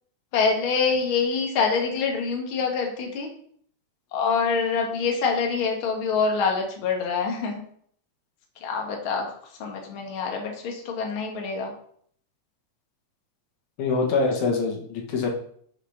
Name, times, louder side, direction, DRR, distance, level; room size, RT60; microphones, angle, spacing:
voice 1, 0.3-3.3 4.1-7.6 8.6-11.7, left 5 dB, 50° left, 1 dB, 2.3 m, -25 dB
voice 2, 13.8-15.3, left 4 dB, 75° left, -1 dB, 3.0 m, -24 dB
6.9 x 6.8 x 5.8 m, 0.62 s
omnidirectional pair, 3.4 m